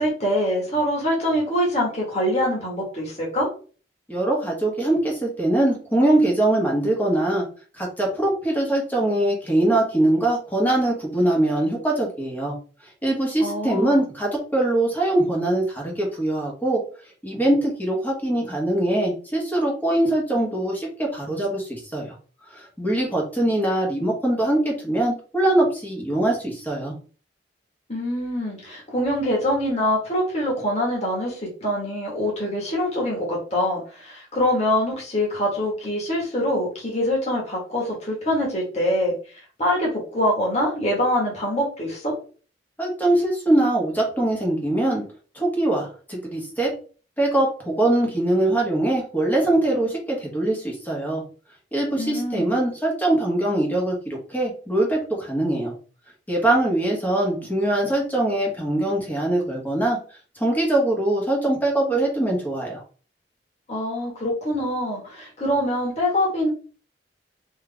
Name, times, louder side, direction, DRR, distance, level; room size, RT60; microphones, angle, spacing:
voice 1, 0.0-3.5 13.4-14.0 27.9-39.1 39.6-42.1 52.0-52.5 63.7-66.5, left 1 dB, 40° left, -3 dB, 1.6 m, -24 dB
voice 2, 4.1-7.4 7.7-12.5 13.0-16.8 17.2-22.1 22.5-26.9 42.8-45.0 45.3-46.7 47.2-51.2 51.7-55.7 56.3-60.0 60.4-62.8, right 1 dB, 10° left, -1 dB, 1.4 m, -22 dB
3.7 x 3.2 x 3.5 m, 0.39 s
head